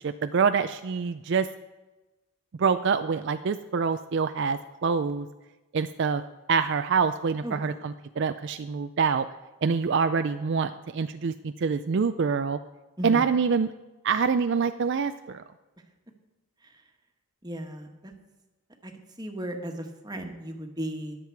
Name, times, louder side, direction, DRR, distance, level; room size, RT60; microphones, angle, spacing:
voice 1, 0.0-1.5 2.6-5.3 5.7-6.2 6.5-9.3 9.6-12.6 13.0-13.7 14.0-15.4, right 5 dB, 55° right, 10 dB, 0.4 m, -26 dB
voice 2, 7.4-7.8 13.0-13.2 16.6-16.7 17.4-18.1 18.8-18.9 19.2-21.2, right 1 dB, 20° right, 4 dB, 1.3 m, -36 dB
21.0 x 7.5 x 4.7 m, 1.1 s
head